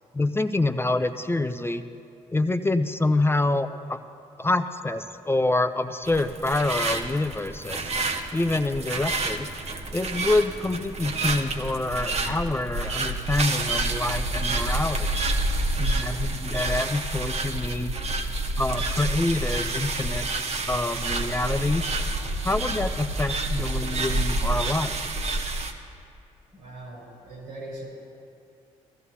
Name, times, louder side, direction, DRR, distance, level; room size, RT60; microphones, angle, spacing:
voice 1, 0.1-1.8 2.3-4.0 4.4-7.9 8.3-9.5 9.9-15.1 15.8-18.0 18.6-20.3 20.7-21.9 22.4-24.9, left 2 dB, 15° left, 9 dB, 0.5 m, -26 dB
sound 1, 6.0-25.7, right 2 dB, 45° right, 1.0 m, -28 dB
voice 2, 26.5-27.9, right 1 dB, 85° right, -4 dB, 3.5 m, -40 dB
17.0 x 13.5 x 2.8 m, 2.5 s
hypercardioid pair, 45°, 16 cm